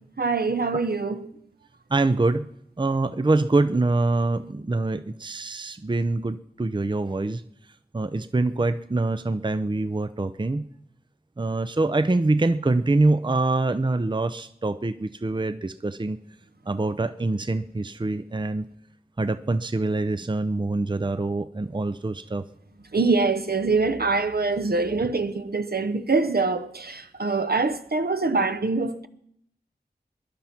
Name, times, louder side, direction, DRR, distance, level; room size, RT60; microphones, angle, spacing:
voice 1, 0.2-1.3 22.9-29.1, right 3 dB, 70° right, 0.9 m, -24 dB
voice 2, 1.9-2.5 2.8-7.4 7.9-10.7 11.4-16.2 16.7-18.7 19.2-22.4, right 2 dB, 30° right, 0.6 m, -25 dB
19.0 x 11.0 x 5.9 m
wide cardioid pair, 50°, 17 cm